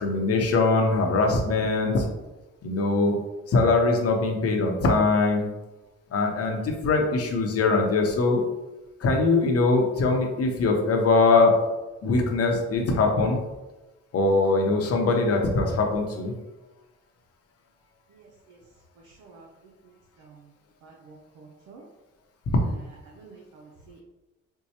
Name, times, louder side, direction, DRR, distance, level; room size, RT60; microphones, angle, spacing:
voice 1, 0.0-2.1 2.6-3.2 3.5-5.5 6.1-8.4 9.0-11.6 12.0-13.4 14.1-16.3, left 3 dB, 50° left, 2 dB, 0.8 m, -22 dB
voice 2, 18.1-18.6 19.0-19.5 19.8-20.5 20.8-21.9 23.0-24.0, right 4 dB, 80° right, -2 dB, 0.7 m, -51 dB
4.4 x 2.2 x 2.8 m, 1.1 s
cardioid pair, 90°, 30 cm